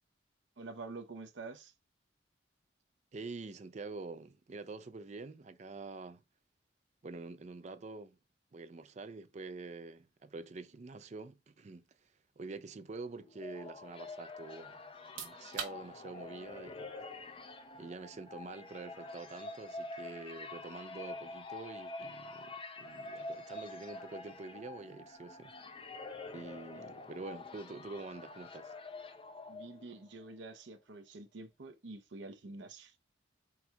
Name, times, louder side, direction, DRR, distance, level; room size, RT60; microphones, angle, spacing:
voice 1, 0.6-1.7 26.7-26.8 29.5-32.9, right 3 dB, 70° right, 0.7 m, -47 dB
voice 2, 3.1-6.2 7.0-8.2 8.5-11.8 12.4-14.8 15.1-16.9 17.7-25.5 26.3-28.8, right 3 dB, 35° right, 0.4 m, -46 dB
sound 1, 13.1-30.1, left 2 dB, 30° left, 0.5 m, -47 dB
sound 2, 14.9-27.6, right 6 dB, 90° right, 1.3 m, -54 dB
4.3 x 2.4 x 4.5 m
head